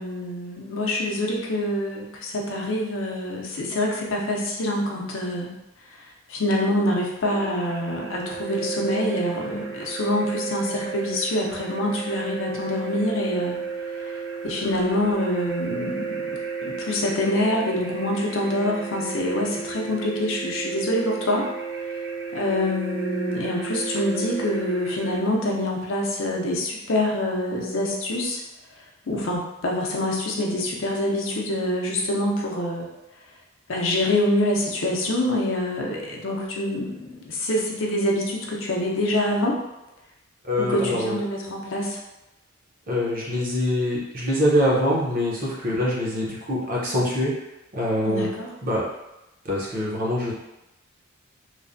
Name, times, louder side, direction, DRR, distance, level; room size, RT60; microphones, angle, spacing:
voice 1, 0.0-5.5 5.9-13.6 13.9-14.1 14.4-16.3 16.6-21.5 22.3-28.4 29.1-32.9 33.7-39.6 40.6-42.0 48.0-48.5, left 1 dB, 70° left, -1 dB, 0.6 m, -26 dB
sound 1, 7.2-25.2, right 5 dB, 75° right, 0.9 m, -33 dB
voice 2, 40.4-41.2 42.9-47.3 47.7-48.3 48.6-48.8 49.4-50.3, left 1 dB, 45° right, -5 dB, 0.7 m, -24 dB
3.1 x 2.1 x 2.5 m, 0.94 s
head